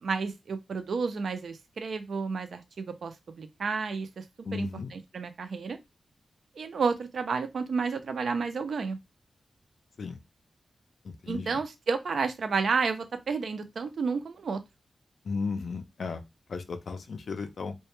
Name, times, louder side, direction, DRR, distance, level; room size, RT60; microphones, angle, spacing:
voice 1, 0.0-4.2 4.5-5.8 6.6-9.0 11.3-14.6, right 5 dB, 55° right, 0.3 m, -31 dB
voice 2, 4.4-4.9 10.0-10.2 11.0-11.6 15.2-16.2 16.5-17.7, left 4 dB, 55° left, 0.3 m, -35 dB
2.1 x 2.1 x 2.9 m
wide cardioid pair, 175°, 0 cm